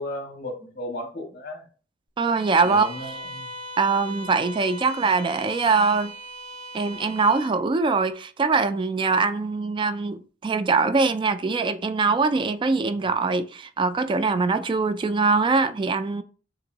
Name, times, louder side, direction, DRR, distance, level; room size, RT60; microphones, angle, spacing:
voice 1, 0.0-1.6 2.6-3.5, left 1 dB, 55° left, 1.6 m, -35 dB
voice 2, 2.2-2.9 3.8-6.1 6.7-16.2, right 4 dB, 25° right, 0.3 m, -22 dB
Bowed string instrument, 2.3-7.6, equal, 90° right, 1.3 m, -39 dB
6.8 x 2.6 x 2.8 m
head